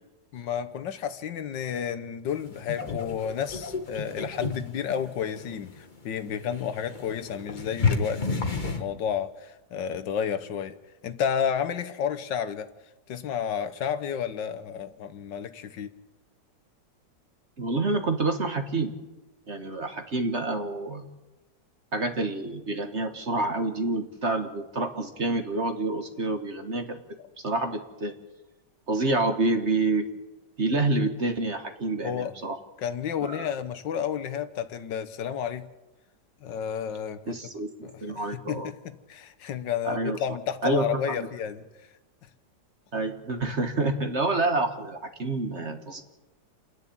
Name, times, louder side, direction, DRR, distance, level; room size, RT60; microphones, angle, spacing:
voice 1, 0.3-10.7 11.0-12.7 13.1-15.9 32.0-32.3 32.8-35.6 36.4-37.4 37.8-41.6, left 8 dB, 75° left, 11 dB, 1.6 m, -31 dB
sound 1, 2.3-8.8, left 4 dB, 30° left, 1.4 m, -32 dB
voice 2, 17.6-18.9 19.5-21.1 21.9-27.0 27.4-28.1 28.9-30.0 30.6-32.6 33.2-33.5 37.3-38.7 39.8-40.2 40.6-41.3 42.9-46.0, right 2 dB, 40° right, 6 dB, 1.7 m, -28 dB
29.0 x 11.0 x 8.6 m, 1.1 s
omnidirectional pair, 2.0 m